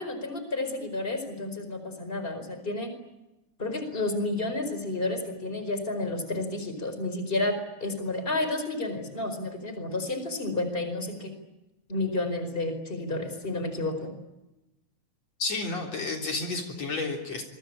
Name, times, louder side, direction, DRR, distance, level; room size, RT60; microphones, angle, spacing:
voice 1, 0.0-2.9 3.6-11.3 11.9-14.1, left 2 dB, 15° left, 9 dB, 4.8 m, -31 dB
voice 2, 15.4-17.4, left 3 dB, 60° left, 3 dB, 4.7 m, -31 dB
27.5 x 23.5 x 8.9 m, 0.97 s
omnidirectional pair, 3.5 m